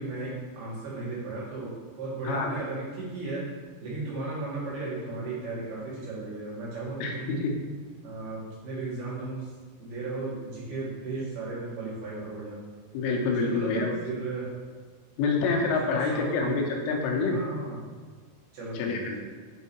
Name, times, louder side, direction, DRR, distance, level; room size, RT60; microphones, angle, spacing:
voice 1, 0.0-3.5 3.8-7.4 8.0-9.5 9.8-12.6 13.4-14.5 15.8-16.5 17.3-17.8 18.5-19.3, right 3 dB, 60° right, -8 dB, 3.4 m, -35 dB
voice 2, 7.0-7.5 12.9-14.0 15.2-17.4 18.8-19.3, left 4 dB, 85° left, 0 dB, 3.3 m, -27 dB
8.3 x 3.5 x 4.3 m, 1.5 s
omnidirectional pair, 5.6 m